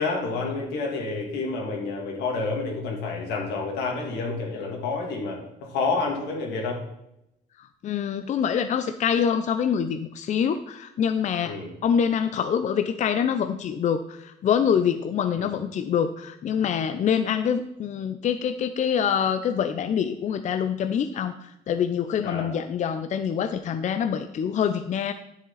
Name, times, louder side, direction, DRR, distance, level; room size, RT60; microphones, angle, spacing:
voice 1, 0.0-6.8 11.4-11.7 15.4-15.5 22.2-22.6, left 3 dB, 85° left, 0 dB, 2.7 m, -29 dB
voice 2, 7.8-11.6 11.8-21.3 21.7-25.1, left 8 dB, 45° left, 9 dB, 0.6 m, -25 dB
10.5 x 7.2 x 4.0 m, 0.83 s
cardioid pair, 110°, 17 cm